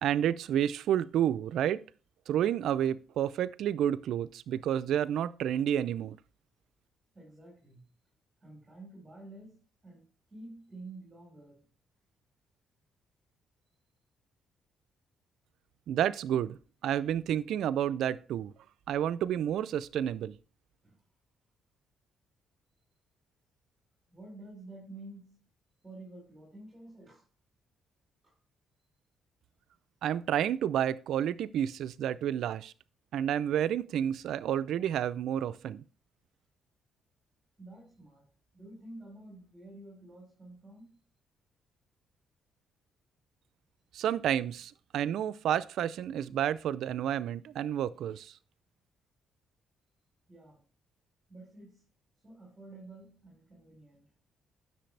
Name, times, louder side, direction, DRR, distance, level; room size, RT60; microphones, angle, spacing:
voice 1, 0.0-1.8 2.3-6.2 15.9-16.6 16.8-18.5 18.9-20.4 30.0-32.7 33.1-35.8 43.9-48.3, right 10 dB, 75° right, 0.5 m, -30 dB
voice 2, 7.1-7.9 8.4-11.7 20.8-21.0 24.1-25.5 25.8-27.3 28.2-28.3 37.6-38.3 38.5-41.0 50.3-50.7 51.3-51.9 52.2-54.1, right 2 dB, 20° right, 4.4 m, -50 dB
10.5 x 6.7 x 3.3 m
cardioid pair, 90°, 0 cm